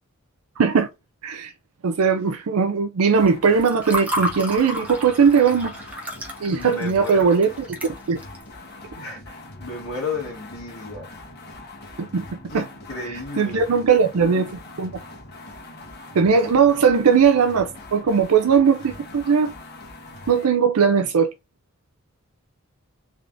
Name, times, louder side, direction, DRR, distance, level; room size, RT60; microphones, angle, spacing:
voice 1, 0.6-0.9 1.2-1.5 1.8-5.8 6.4-7.8 8.1-8.2 12.0-12.2 12.5-12.6 13.4-14.9 16.1-19.5 20.3-21.3, right 6 dB, 80° right, 0.5 m, -19 dB
sound 1, 3.1-20.5, left 2 dB, 50° left, 1.3 m, -42 dB
Water / Fill (with liquid), 3.3-8.4, equal, 5° right, 0.8 m, -31 dB
voice 2, 6.5-7.3 9.0-11.1 12.5-13.7 16.7-16.8, left 3 dB, 80° left, 1.8 m, -33 dB
3.7 x 3.5 x 2.5 m
head